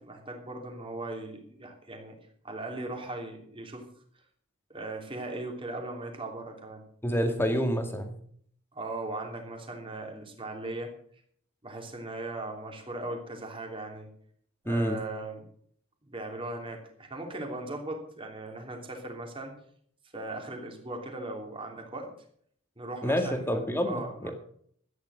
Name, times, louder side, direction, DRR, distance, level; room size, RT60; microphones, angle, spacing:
voice 1, 0.0-2.2 2.4-3.9 4.7-6.8 8.7-10.9 11.6-14.1 14.6-15.5 16.0-19.5 20.1-22.1 22.8-24.3, right 2 dB, 25° right, 2 dB, 3.1 m, -38 dB
voice 2, 7.0-8.2 14.7-15.0 23.0-24.3, equal, 10° left, 6 dB, 2.0 m, -28 dB
13.0 x 10.0 x 6.4 m, 0.62 s
head